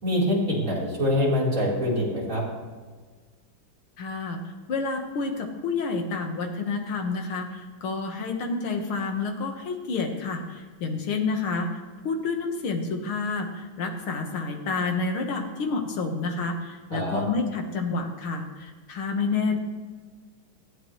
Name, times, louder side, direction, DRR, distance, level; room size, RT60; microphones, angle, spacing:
voice 1, 0.0-2.4 16.9-17.2, left 1 dB, 40° right, -6 dB, 4.3 m, -24 dB
voice 2, 4.0-4.4 4.7-11.8 12.0-19.6, left 4 dB, 85° left, 4 dB, 2.3 m, -29 dB
19.0 x 13.5 x 3.2 m, 1.4 s
omnidirectional pair, 2.2 m